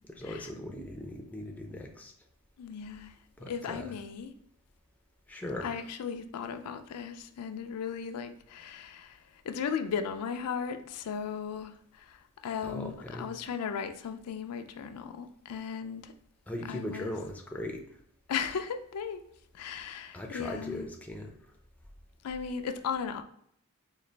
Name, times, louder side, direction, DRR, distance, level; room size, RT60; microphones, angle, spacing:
voice 1, 0.2-2.1 3.4-3.9 5.3-5.7 12.6-13.3 16.5-18.0 20.1-21.3, left 1 dB, 5° left, 0.4 m, -39 dB
voice 2, 2.6-3.1 3.4-4.3 5.6-16.1 16.7-17.1 18.3-19.2 19.5-20.9 22.2-23.2, left 6 dB, 85° left, 0.4 m, -36 dB
4.0 x 2.4 x 3.2 m
head